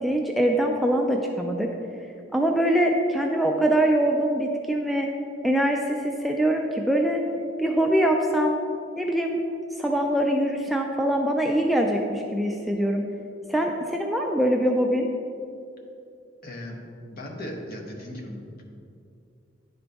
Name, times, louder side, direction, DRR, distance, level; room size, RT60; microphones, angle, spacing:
voice 1, 0.0-1.7 2.3-5.1 5.4-7.2 7.6-8.6 9.0-9.4 9.8-13.1 13.5-15.1, right 1 dB, ahead, 1 dB, 0.3 m, -23 dB
voice 2, 16.4-16.8 17.1-18.6, left 1 dB, 55° left, 0 dB, 1.0 m, -37 dB
10.5 x 3.9 x 3.4 m, 2.5 s
head